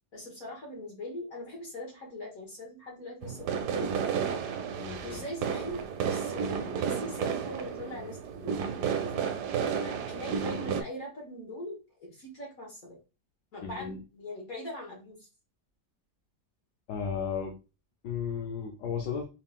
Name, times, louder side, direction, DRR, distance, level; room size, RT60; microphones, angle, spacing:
voice 1, 0.1-4.4 5.0-8.6 8.9-9.4 9.7-13.0 13.5-15.3, left 1 dB, 60° left, -2 dB, 1.7 m, -41 dB
sound 1, 3.2-10.8, right 7 dB, 85° right, 1.2 m, -32 dB
voice 2, 4.8-5.2 13.6-14.0 16.9-17.6 18.0-19.3, left 7 dB, 85° left, 2 dB, 1.4 m, -34 dB
4.6 x 3.6 x 2.3 m, 0.30 s
omnidirectional pair, 1.7 m